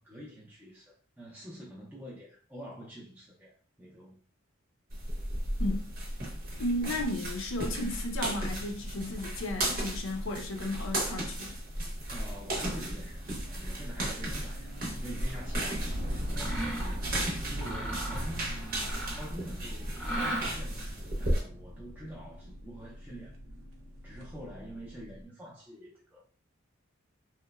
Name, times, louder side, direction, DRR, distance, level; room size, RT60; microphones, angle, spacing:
voice 1, 0.0-4.2 12.1-17.1 17.5-23.4 24.0-26.2, right 1 dB, 10° right, 0.4 m, -46 dB
sound 1, 4.9-21.4, right 1 dB, 45° right, 0.7 m, -35 dB
voice 2, 5.6-5.9 6.6-11.6, left 1 dB, 70° left, 0.5 m, -34 dB
sound 2, 15.9-25.2, equal, 80° right, 0.6 m, -43 dB
Mechanisms, 16.3-17.0 17.5-19.4 19.9-20.8, right 1 dB, 10° left, 0.9 m, -37 dB
2.9 x 2.0 x 2.3 m
head